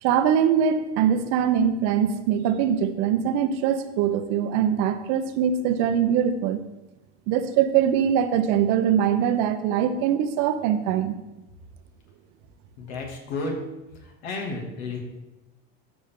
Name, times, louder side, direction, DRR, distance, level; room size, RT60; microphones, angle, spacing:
voice 1, 0.0-6.6 7.3-11.2, right 8 dB, 60° right, 10 dB, 0.8 m, -22 dB
voice 2, 12.8-13.6 14.0-15.0, left 3 dB, 75° left, 1 dB, 2.5 m, -32 dB
13.5 x 5.3 x 3.7 m, 0.99 s
supercardioid pair, 110°, 32 cm